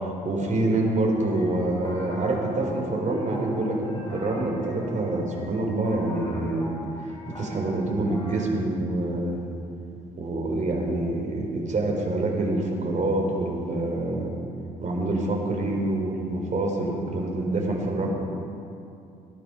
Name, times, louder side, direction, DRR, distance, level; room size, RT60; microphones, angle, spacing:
voice 1, 0.0-6.7 7.0-9.4 10.2-14.3 14.8-18.1, right 2 dB, 40° right, 0 dB, 4.2 m, -26 dB
sound 1, 1.2-8.5, left 1 dB, 25° left, 3.2 m, -41 dB
17.5 x 11.0 x 5.1 m, 2.6 s
hypercardioid pair, 50°, 18 cm